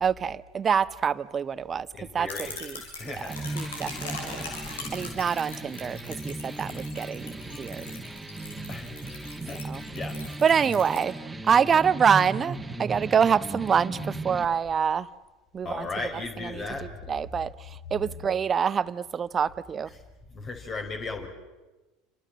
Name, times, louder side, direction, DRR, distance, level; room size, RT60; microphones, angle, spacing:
voice 1, 0.0-1.9 2.1-2.3 2.6-2.8 3.0-4.5 4.9-7.9 9.7-9.8 10.4-11.1 11.5-15.1 15.5-15.9 16.5-16.6 17.1-17.5 17.9-19.9, right 7 dB, 30° right, 1.0 m, -25 dB
voice 2, 1.9-2.6 3.0-3.5 8.7-8.9 9.4-9.6 9.9-10.1 15.6-17.0 18.1-18.3 20.3-21.3, left 3 dB, 35° left, 5.0 m, -36 dB
sound 1, 2.3-11.0, left 3 dB, 75° left, 7.0 m, -41 dB
sound 2, 3.3-14.4, right 2 dB, 10° right, 2.3 m, -37 dB
29.0 x 26.5 x 7.5 m
figure-of-eight pair, 75°, 0 cm